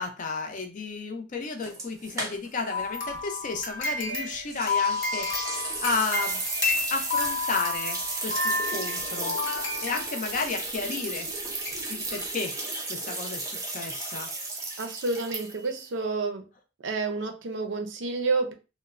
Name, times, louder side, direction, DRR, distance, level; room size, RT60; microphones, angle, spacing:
voice 1, 0.0-5.3 5.8-6.4 6.9-9.4 9.8-11.3 11.9-12.5 12.9-14.3, left 4 dB, 45° left, 5 dB, 0.5 m, -32 dB
sound 1, 1.6-2.7 3.0-3.1 4.5-15.8, right 2 dB, 15° right, 0.6 m, -34 dB
sound 2, 2.7-10.5 11.2-11.3 11.7-11.8 12.2-12.3, left 3 dB, 65° left, 0.9 m, -31 dB
voice 2, 14.8-16.4 16.8-18.5, right 3 dB, 70° right, 6 dB, 0.5 m, -29 dB
3.0 x 2.0 x 2.4 m, 0.31 s
head